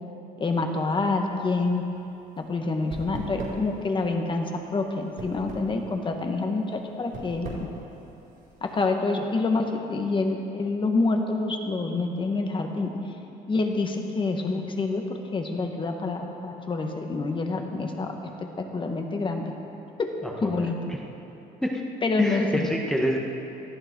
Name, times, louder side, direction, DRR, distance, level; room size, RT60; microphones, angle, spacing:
voice 1, 0.4-1.8 2.4-7.7 8.6-12.9 13.5-15.0 15.3-18.1 18.4-19.4 20.0-20.8 22.0-22.7, left 3 dB, 30° left, 3 dB, 1.8 m, -27 dB
sound 1, 1.3-8.8, right 3 dB, 60° right, 4.5 m, -41 dB
voice 2, 20.2-21.0 21.6-21.8 22.2-23.2, equal, 5° left, -1 dB, 1.5 m, -27 dB
19.0 x 14.0 x 4.8 m, 3.0 s
cardioid pair, 110°, 17 cm